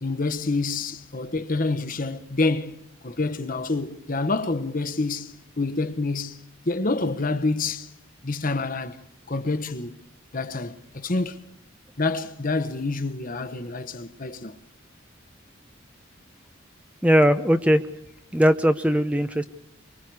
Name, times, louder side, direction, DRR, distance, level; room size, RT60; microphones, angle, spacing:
voice 1, 0.0-7.9 8.2-9.0 9.3-10.0 10.3-11.4 12.0-14.6, left 3 dB, 40° left, 1.1 m, -27 dB
voice 2, 17.0-17.8 18.3-19.4, equal, 5° right, 0.7 m, -19 dB
24.5 x 23.5 x 4.8 m
head